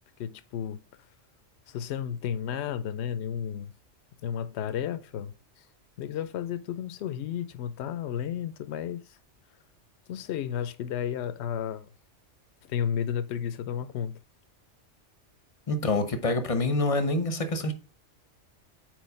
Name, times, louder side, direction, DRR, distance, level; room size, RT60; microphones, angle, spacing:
voice 1, 0.2-0.8 1.7-3.7 4.2-5.3 6.0-9.2 10.1-11.9 12.6-14.2, left 9 dB, 70° left, 0.8 m, -32 dB
voice 2, 15.7-17.7, left 2 dB, 35° left, 0.7 m, -26 dB
4.7 x 4.4 x 5.4 m
omnidirectional pair, 1.2 m